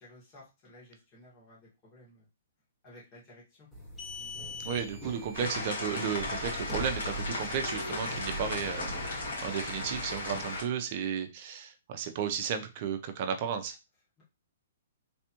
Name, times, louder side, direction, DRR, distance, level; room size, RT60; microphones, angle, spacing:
voice 1, 0.0-2.3 2.8-3.7 4.1-4.3, left 1 dB, 25° left, -6 dB, 1.8 m, -55 dB
sound 1, 3.7-10.6, equal, 5° left, 1.0 m, -41 dB
voice 2, 4.6-13.8, right 7 dB, 45° right, 7 dB, 0.7 m, -34 dB
sound 2, 5.3-10.6, left 2 dB, 75° left, 1.8 m, -36 dB
3.4 x 3.3 x 2.9 m, 0.27 s
hypercardioid pair, 150°, 0 cm